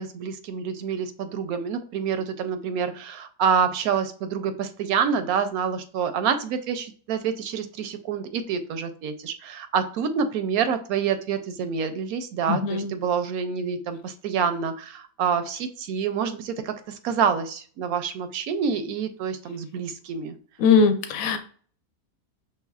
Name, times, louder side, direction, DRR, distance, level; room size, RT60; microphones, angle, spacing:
voice 1, 0.0-20.3, right 6 dB, 80° right, 9 dB, 1.1 m, -27 dB
voice 2, 12.5-12.9 20.6-21.4, left 5 dB, 70° left, 8 dB, 1.1 m, -20 dB
5.5 x 3.2 x 2.3 m, 0.43 s
omnidirectional pair, 1.6 m